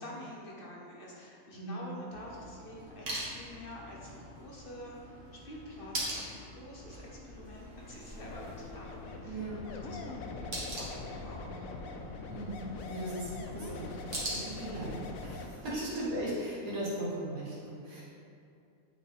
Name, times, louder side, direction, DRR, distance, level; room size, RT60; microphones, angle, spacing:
voice 1, 0.0-5.2 5.4-12.0 14.5-14.8 15.7-15.8, left 1 dB, 45° left, -3 dB, 1.1 m, -48 dB
voice 2, 1.5-1.8 9.2-9.7 12.3-12.6 12.9-13.8 14.3-18.0, right 1 dB, 80° right, -8 dB, 1.8 m, -37 dB
sound 1, 2.1-16.3, right 1 dB, 60° right, 1.8 m, -44 dB
sound 2, 7.8-11.3, left 5 dB, 45° right, 1.8 m, -55 dB
sound 3, 8.2-15.5, left 3 dB, 75° left, 1.0 m, -43 dB
8.4 x 4.4 x 3.5 m, 2.5 s
omnidirectional pair, 1.5 m